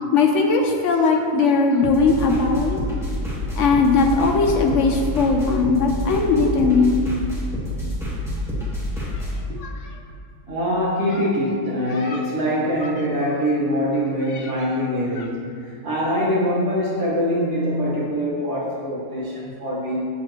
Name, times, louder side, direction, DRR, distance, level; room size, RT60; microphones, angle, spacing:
voice 1, 0.1-2.8 3.6-7.0 9.1-9.2 9.6-9.7 12.1-12.2 14.3-14.4, left 4 dB, 65° left, 2 dB, 0.8 m, -19 dB
sound 1, 1.8-9.3, left 1 dB, ahead, 1.4 m, -28 dB
voice 2, 10.5-20.0, equal, 45° right, -7 dB, 1.7 m, -23 dB
7.2 x 6.5 x 3.1 m, 2.3 s
omnidirectional pair, 1.7 m